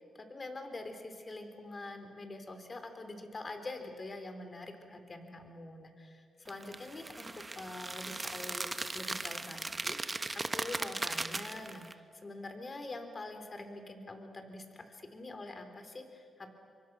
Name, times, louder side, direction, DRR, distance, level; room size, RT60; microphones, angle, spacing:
voice 1, 0.2-16.5, left 2 dB, 35° left, 7 dB, 3.5 m, -45 dB
sound 1, 6.5-11.9, right 2 dB, 25° right, 1.3 m, -38 dB
26.5 x 24.0 x 6.2 m, 2.3 s
cardioid pair, 70°, 0 cm